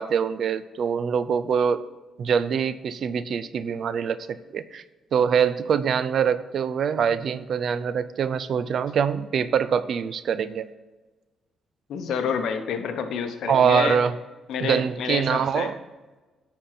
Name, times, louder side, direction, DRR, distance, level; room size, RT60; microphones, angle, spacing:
voice 1, 0.0-1.8 2.2-4.8 5.1-10.7 13.5-14.1 14.6-15.8, right 7 dB, 60° right, 14 dB, 0.4 m, -24 dB
voice 2, 11.9-14.0 14.5-15.7, left 6 dB, 75° left, 7 dB, 0.9 m, -28 dB
10.0 x 4.3 x 5.8 m, 1.2 s
cardioid pair, 90°, 0 cm